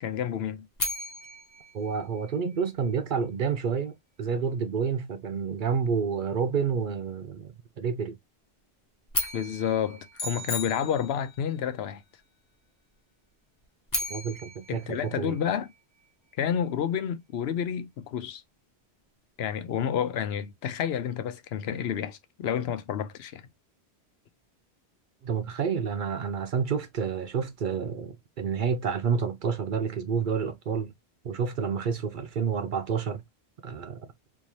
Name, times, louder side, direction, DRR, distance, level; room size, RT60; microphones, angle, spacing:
voice 1, 0.0-0.7 9.3-12.0 14.7-15.7 16.4-18.4 19.4-23.5, left 8 dB, 75° left, 0.8 m, -30 dB
sound 1, 0.8-2.9 9.1-11.3 13.6-16.0, left 1 dB, 20° left, 0.9 m, -36 dB
voice 2, 1.7-8.2 14.1-15.4 25.2-30.9 31.2-33.2 33.6-34.1, right 6 dB, 60° right, 0.6 m, -29 dB
sound 2, 10.1-11.5, left 3 dB, 45° left, 0.8 m, -36 dB
3.6 x 3.1 x 2.7 m
omnidirectional pair, 1.1 m